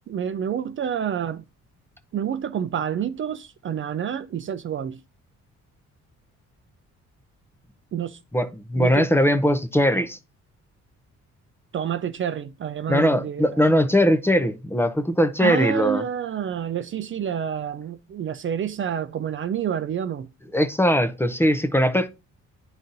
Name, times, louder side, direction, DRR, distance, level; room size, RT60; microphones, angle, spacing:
voice 1, 0.1-1.4 2.1-5.0 7.9-8.2 8.8-9.1 11.7-13.6 15.4-20.3, right 8 dB, 45° right, 0.5 m, -28 dB
voice 2, 8.3-10.2 12.9-16.0 20.5-22.1, equal, 10° left, 0.6 m, -20 dB
10.0 x 4.0 x 2.5 m
cardioid pair, 90°, 30 cm